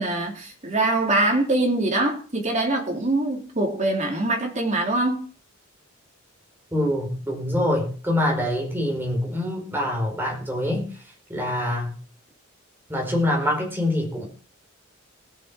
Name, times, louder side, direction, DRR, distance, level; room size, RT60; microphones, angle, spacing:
voice 1, 0.0-5.3, right 2 dB, 35° right, 3.1 m, -23 dB
voice 2, 6.7-10.9 11.3-11.9 12.9-14.3, left 1 dB, 10° right, 4.5 m, -25 dB
19.5 x 7.1 x 4.6 m
head